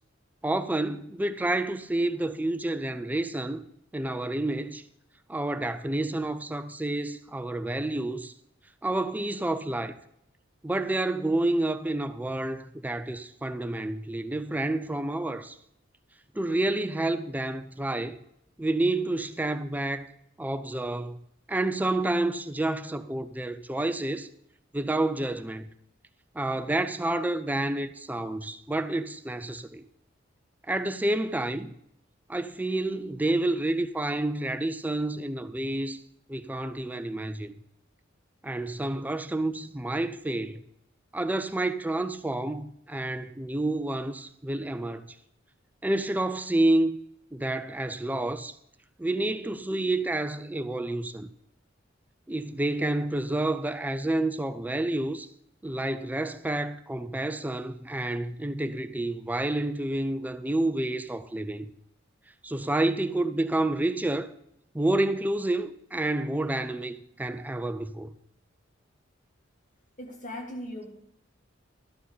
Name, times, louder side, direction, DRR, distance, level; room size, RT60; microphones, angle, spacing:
voice 1, 0.4-3.6 3.9-4.8 5.3-8.3 8.8-9.9 10.6-15.6 16.3-18.2 18.6-20.1 20.4-21.2 21.5-24.3 24.7-25.7 26.3-29.9 30.7-31.7 32.3-36.0 36.3-37.5 38.4-40.6 41.1-45.2 45.8-47.0 47.3-48.6 49.0-51.3 52.3-55.3 55.6-61.7 62.4-64.3 64.7-68.1, right 2 dB, 10° right, 0.4 m, -29 dB
voice 2, 70.0-70.9, left 1 dB, 40° left, 2.0 m, -38 dB
12.5 x 4.7 x 8.5 m
head